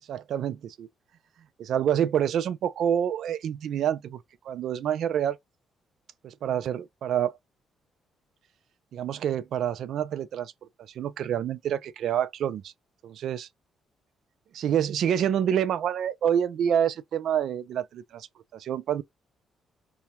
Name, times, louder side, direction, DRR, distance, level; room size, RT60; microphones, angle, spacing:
voice 1, 0.1-0.9 1.6-4.2 4.5-5.4 6.2-7.3 8.9-10.5 11.0-12.7 13.0-13.5 14.5-18.3 18.5-19.0, right 9 dB, 70° right, 0.4 m, -27 dB
2.7 x 2.2 x 2.9 m
cardioid pair, 90°, 0 cm